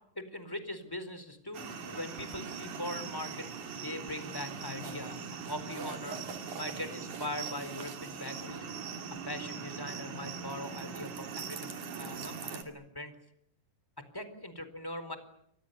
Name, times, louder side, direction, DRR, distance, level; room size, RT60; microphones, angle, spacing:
voice 1, 0.2-5.2 5.5-6.2 6.5-13.1 14.1-15.2, left 1 dB, 5° left, 11 dB, 3.9 m, -41 dB
sound 1, 1.5-12.6, right 6 dB, 60° right, 4.1 m, -41 dB
29.5 x 25.0 x 6.9 m, 0.74 s
omnidirectional pair, 3.9 m